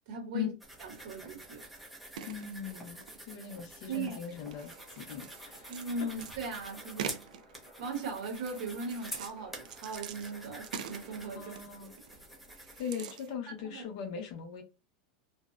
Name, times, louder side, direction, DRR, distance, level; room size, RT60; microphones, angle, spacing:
voice 1, 0.1-0.5 0.8-1.6 3.9-4.2 5.7-7.2 7.8-11.5 11.8-11.9 13.6-13.8, right 3 dB, 60° right, 1.0 m, -39 dB
sound 1, 0.6-12.8, right 1 dB, ahead, 0.5 m, -48 dB
sound 2, 2.1-3.6 4.1-6.3 7.0-7.7 8.2-9.4 9.6-12.2 12.5-13.3, right 8 dB, 85° right, 0.3 m, -45 dB
voice 2, 2.3-3.0 3.3-5.7 11.3-11.9 12.8-14.6, left 8 dB, 55° left, 0.5 m, -39 dB
sound 3, 4.4-11.3, equal, 15° left, 0.9 m, -59 dB
2.6 x 2.1 x 2.3 m
supercardioid pair, 170°, 4 cm